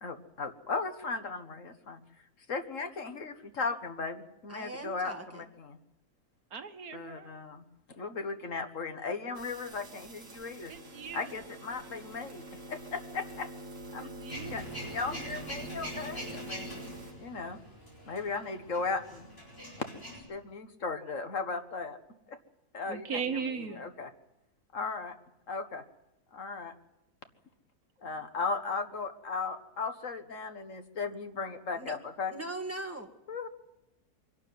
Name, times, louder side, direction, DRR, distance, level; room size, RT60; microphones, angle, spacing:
voice 1, 0.0-2.0 2.5-5.8 6.9-7.6 8.0-10.7 11.1-12.4 12.7-13.5 13.9-14.1 14.5-16.9 17.2-17.6 18.1-19.3 20.3-22.0 22.3-22.4 22.7-24.1 24.7-25.1 25.5-25.8 26.3-26.7 28.0-32.3 33.3-33.5, left 4 dB, 55° left, 9 dB, 1.7 m, -36 dB
voice 2, 4.5-5.5 31.7-32.0 32.3-33.1, right 2 dB, 10° right, 3 dB, 2.1 m, -40 dB
voice 3, 6.5-7.3 10.7-11.4 14.0-14.7 22.9-23.9, right 6 dB, 70° right, 9 dB, 1.8 m, -38 dB
sound 1, 9.3-17.1, right 2 dB, 50° right, 3.8 m, -46 dB
Male speech man speaking / Vehicle / Engine starting, 14.3-20.2, equal, 40° left, 7.5 m, -44 dB
24.0 x 12.0 x 9.4 m, 0.91 s
omnidirectional pair, 1.6 m